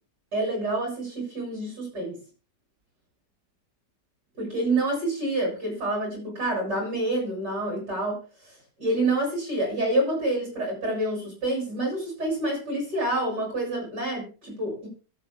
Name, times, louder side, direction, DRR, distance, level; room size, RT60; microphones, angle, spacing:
voice 1, 0.3-2.2 4.4-14.9, right 1 dB, 70° right, 0 dB, 8.1 m, -28 dB
23.5 x 8.0 x 2.2 m, 0.33 s
omnidirectional pair, 1.9 m